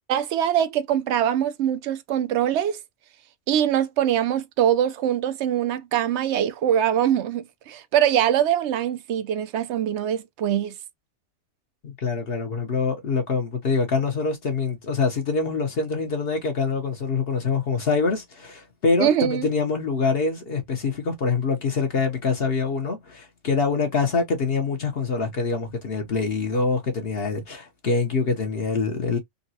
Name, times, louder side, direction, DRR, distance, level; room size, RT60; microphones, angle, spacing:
voice 1, 0.1-2.8 3.5-10.8 19.0-19.5, right 10 dB, 70° right, 0.9 m, -23 dB
voice 2, 11.8-29.2, left 4 dB, 55° left, 1.0 m, -25 dB
3.8 x 2.2 x 2.7 m
omnidirectional pair, 1.2 m